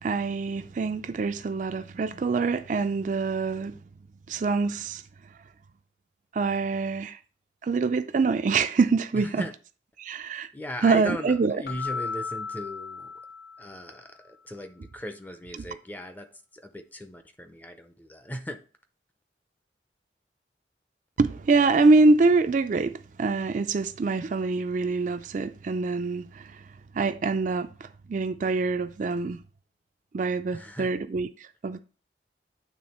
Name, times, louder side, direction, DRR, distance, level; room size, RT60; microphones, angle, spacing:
voice 1, 0.0-3.7 4.3-5.0 6.3-7.2 7.6-9.5 10.0-10.5 10.8-11.6 15.6-15.7 21.2-26.6 26.9-29.4 30.1-31.8, right 3 dB, 45° right, 0.3 m, -25 dB
voice 2, 9.1-9.5 10.5-13.1 13.6-16.3 16.5-18.6 30.5-30.9, equal, 10° left, 0.5 m, -38 dB
Keyboard (musical), 11.7-14.1, left 5 dB, 60° left, 0.5 m, -36 dB
8.8 x 3.4 x 4.2 m
head